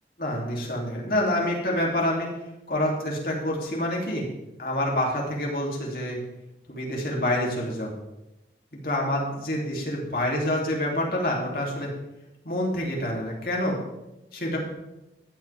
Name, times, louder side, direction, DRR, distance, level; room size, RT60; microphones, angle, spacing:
voice 1, 0.2-2.3 2.7-4.3 4.6-6.2 6.7-7.9 8.7-11.9 12.4-13.8 14.3-14.6, left 1 dB, 55° left, -2 dB, 3.1 m, -27 dB
14.5 x 10.5 x 3.6 m, 0.96 s
head